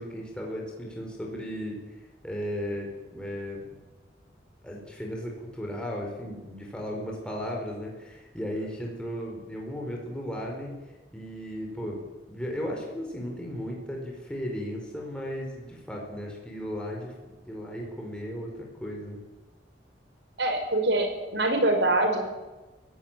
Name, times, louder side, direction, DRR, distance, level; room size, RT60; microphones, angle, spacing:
voice 1, 0.0-3.7 4.6-10.8 11.1-12.0 12.3-17.1 17.4-19.2, equal, 5° left, -1 dB, 4.9 m, -35 dB
voice 2, 20.4-22.2, right 2 dB, 75° right, 5 dB, 5.2 m, -24 dB
21.5 x 16.5 x 9.2 m, 1.1 s
head